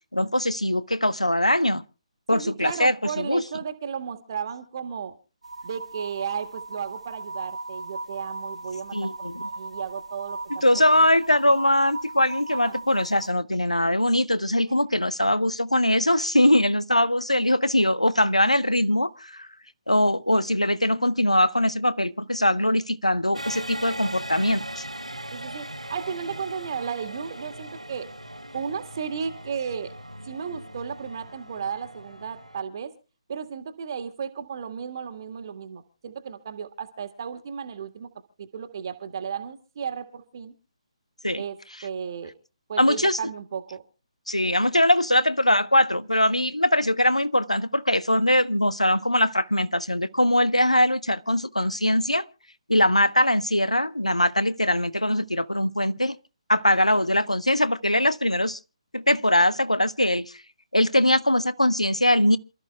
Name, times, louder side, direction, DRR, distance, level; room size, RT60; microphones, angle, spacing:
voice 1, 0.1-1.8 2.3-3.4 8.9-9.5 10.6-19.5 19.9-24.8 41.2-41.4 42.8-43.2 44.3-52.3 52.7-56.2 56.5-58.6 58.9-60.3 60.7-62.4, left 1 dB, 85° left, 0.8 m, -22 dB
voice 2, 2.3-5.1 5.6-9.1 9.4-10.6 12.5-12.8 25.3-28.1 28.5-29.9 30.3-32.9 33.3-38.1 38.4-40.5 41.4-41.6 41.8-42.3 42.7-43.8, right 7 dB, 40° right, 1.7 m, -34 dB
sound 1, 5.4-13.3, right 2 dB, 65° right, 0.9 m, -38 dB
sound 2, 23.3-32.6, right 1 dB, 85° right, 1.4 m, -39 dB
28.0 x 13.5 x 2.3 m
figure-of-eight pair, 140°, 3 cm